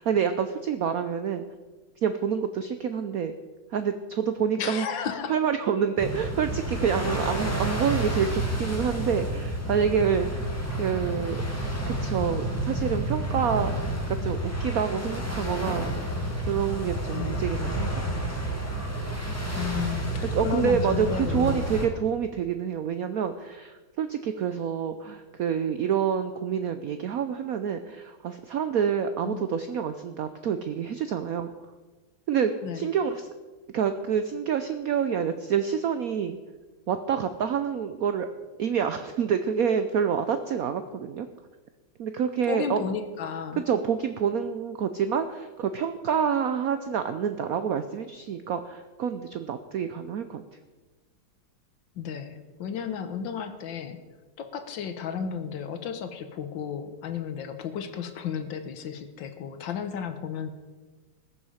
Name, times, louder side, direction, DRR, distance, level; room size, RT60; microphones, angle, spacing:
voice 1, 0.0-1.4 2.0-3.3 3.7-4.9 5.3-10.5 10.8-11.4 11.9-13.7 14.1-15.9 16.5-18.4 20.3-31.5 32.3-33.3 33.7-36.4 36.9-38.3 38.6-41.3 42.0-42.8 43.7-50.4, right 7 dB, 85° right, 9 dB, 0.7 m, -27 dB
voice 2, 4.6-5.3 17.1-17.4 19.5-21.6 29.2-29.4 32.6-32.9 42.5-43.6 51.9-54.0 54.4-60.5, left 7 dB, 70° left, 9 dB, 1.6 m, -33 dB
sound 1, 6.0-21.9, right 1 dB, 10° left, 1.6 m, -30 dB
20.0 x 7.1 x 5.0 m, 1.3 s
omnidirectional pair, 2.3 m